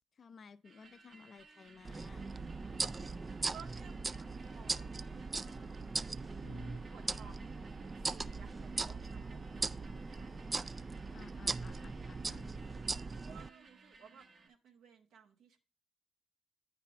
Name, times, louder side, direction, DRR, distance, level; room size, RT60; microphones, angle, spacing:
voice 1, 0.2-2.3 6.4-6.8 11.1-12.5, left 5 dB, 50° left, 0.4 m, -55 dB
sound 1, 0.6-14.5, right 4 dB, 55° right, 1.1 m, -60 dB
sound 2, 1.8-13.5, right 3 dB, 30° right, 0.3 m, -40 dB
voice 2, 3.5-5.8 6.2-6.4 6.9-10.6 11.4-12.1 13.2-15.6, right 7 dB, 80° right, 1.1 m, -58 dB
9.3 x 3.4 x 6.0 m
supercardioid pair, 55°, 0 cm